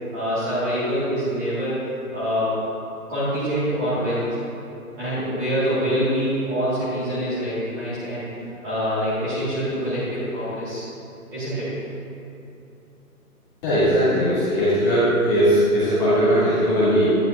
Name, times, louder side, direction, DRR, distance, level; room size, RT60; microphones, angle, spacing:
voice 1, 0.1-1.8 2.1-2.5 3.1-4.4 5.0-8.3 8.6-10.9 11.3-11.7, equal, 15° right, -14 dB, 1.8 m, -25 dB
voice 2, 13.6-17.1, equal, 15° left, -13 dB, 2.1 m, -19 dB
10.5 x 10.5 x 2.5 m, 2.8 s
hypercardioid pair, 165°, 44 cm